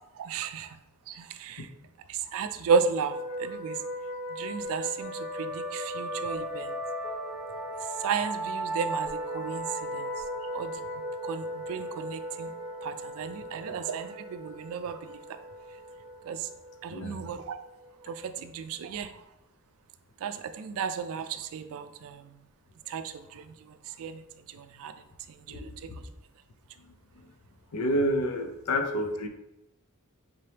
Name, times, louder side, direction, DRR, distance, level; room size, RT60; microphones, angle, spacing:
voice 1, 0.2-0.8 1.1-1.7 2.1-3.8 4.3-6.8 8.0-10.1 10.4-10.7 11.2-12.5 12.8-15.2 16.3-16.5 16.8-17.6 18.0-19.2 20.2-22.3 22.9-24.2 24.5-24.9 25.3-25.7, right 6 dB, 70° right, 10 dB, 0.3 m, -33 dB
sound 1, 3.1-18.4, right 1 dB, 5° right, 0.4 m, -37 dB
voice 2, 16.9-17.3 25.5-26.0 27.2-27.3 27.7-29.3, equal, 85° left, 6 dB, 0.5 m, -30 dB
3.9 x 2.8 x 3.2 m, 0.90 s
head